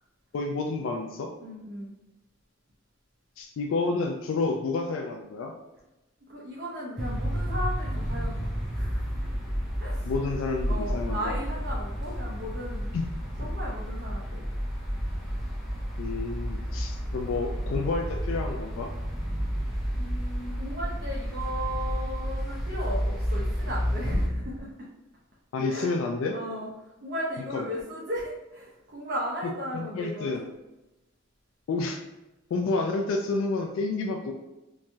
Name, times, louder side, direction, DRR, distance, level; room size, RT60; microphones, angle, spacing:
voice 1, 0.3-1.3 3.4-5.5 10.1-11.4 12.9-13.1 16.0-18.9 25.5-26.3 27.4-27.7 29.7-30.5 31.7-32.0 32.5-34.3, left 3 dB, 80° left, 3 dB, 0.3 m, -29 dB
voice 2, 1.4-1.9 6.3-9.1 9.8-10.1 10.7-12.9 13.4-14.4 20.0-24.7 25.7-25.9 26.3-26.7 27.0-30.4, equal, 55° right, -6 dB, 0.6 m, -35 dB
sound 1, 7.0-24.3, equal, ahead, 0.5 m, -31 dB
3.0 x 2.6 x 2.2 m, 1.0 s
head